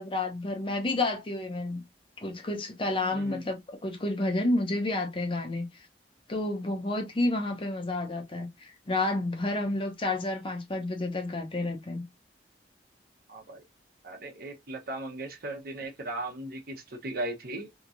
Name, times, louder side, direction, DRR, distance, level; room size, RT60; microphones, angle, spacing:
voice 1, 0.0-1.8 2.2-5.7 6.3-12.1, left 2 dB, 30° left, 0.6 m, -30 dB
voice 2, 3.1-3.5 13.3-13.6 14.0-17.7, right 2 dB, 55° right, 0.8 m, -37 dB
2.9 x 2.7 x 2.4 m
head